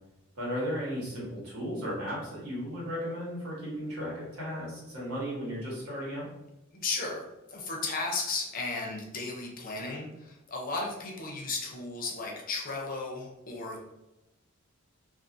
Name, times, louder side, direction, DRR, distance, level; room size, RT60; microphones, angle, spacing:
voice 1, 0.3-6.3, equal, 90° right, -6 dB, 1.3 m, -35 dB
voice 2, 6.7-7.2 7.5-13.8, left 3 dB, 40° left, -1 dB, 0.5 m, -35 dB
2.4 x 2.3 x 2.5 m, 0.94 s
head